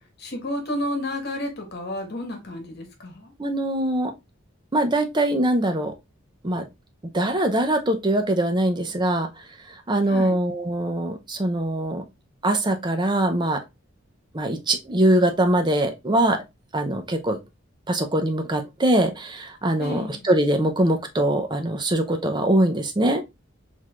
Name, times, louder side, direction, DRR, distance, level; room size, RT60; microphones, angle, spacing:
voice 1, 0.2-3.3 10.1-10.4 19.8-20.2, left 1 dB, 55° left, 1.3 m, -31 dB
voice 2, 3.4-4.1 4.7-5.9 6.4-6.7 7.1-9.3 9.9-12.0 12.4-13.6 14.3-16.4 16.7-17.4 17.9-23.2, right 1 dB, 20° right, 0.6 m, -22 dB
4.7 x 3.6 x 2.4 m
head